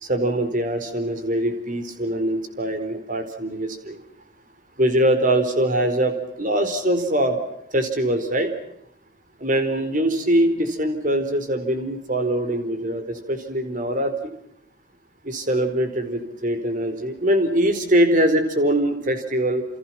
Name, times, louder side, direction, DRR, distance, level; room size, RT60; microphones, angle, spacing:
voice 1, 0.0-4.0 4.8-7.4 7.7-8.5 9.4-14.3 15.2-19.7, right 1 dB, 45° right, 8 dB, 4.3 m, -22 dB
29.0 x 29.0 x 6.0 m, 0.76 s
head